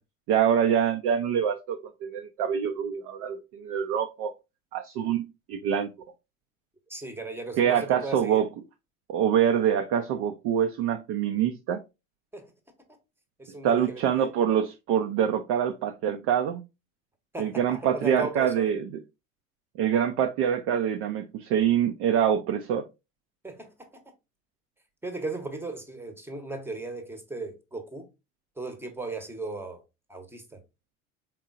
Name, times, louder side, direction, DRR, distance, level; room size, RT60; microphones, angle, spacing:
voice 1, 0.3-4.3 4.7-5.2 5.5-5.9 7.6-8.5 9.1-11.8 13.6-16.6 17.4-18.8 19.8-22.9, right 9 dB, 35° right, 0.4 m, -25 dB
voice 2, 6.9-8.4 12.3-12.5 12.9-13.0 13.4-14.3 17.3-18.7 23.4-24.1 25.0-28.1 28.6-29.8 30.1-30.6, right 3 dB, 5° right, 0.8 m, -37 dB
4.4 x 3.6 x 2.4 m
figure-of-eight pair, 70°, 41 cm